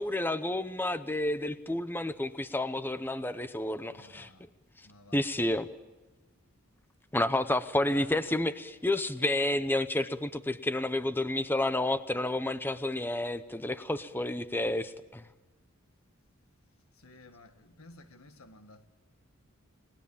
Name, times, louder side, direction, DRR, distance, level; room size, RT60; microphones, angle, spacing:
voice 1, 0.0-4.3 5.1-5.7 7.1-15.2, left 1 dB, 10° left, 0.7 m, -30 dB
voice 2, 3.9-4.5 4.8-5.3 7.9-8.1 16.9-18.9, left 2 dB, 85° left, 1.8 m, -53 dB
30.0 x 20.0 x 7.2 m
head